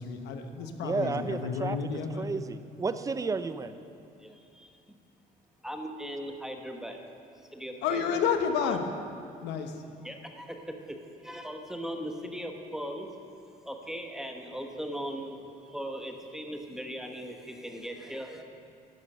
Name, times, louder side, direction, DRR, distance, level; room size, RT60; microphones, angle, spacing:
voice 1, 0.0-2.3 7.8-8.8 9.4-9.8, left 6 dB, 85° left, 5 dB, 1.2 m, -30 dB
voice 2, 0.8-1.8 2.2-3.7, right 4 dB, 20° right, 11 dB, 0.6 m, -32 dB
voice 3, 4.2-4.9 5.6-7.0 7.3-8.1 8.6-8.8 10.0-11.0 11.2-13.1 13.6-18.4, equal, 5° right, 3 dB, 1.1 m, -39 dB
11.5 x 11.5 x 5.6 m, 2.5 s
cardioid pair, 110°, 17 cm